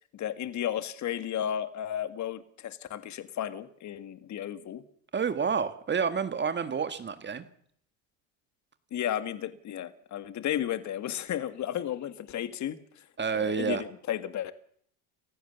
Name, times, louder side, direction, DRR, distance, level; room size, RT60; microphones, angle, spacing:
voice 1, 0.1-4.8 8.9-13.0 13.3-14.5, left 10 dB, 45° left, 11 dB, 2.0 m, -33 dB
voice 2, 5.1-7.5 13.2-13.8, right 6 dB, 25° right, 10 dB, 1.8 m, -29 dB
29.0 x 15.5 x 7.0 m, 0.63 s
supercardioid pair, 105°, 40 cm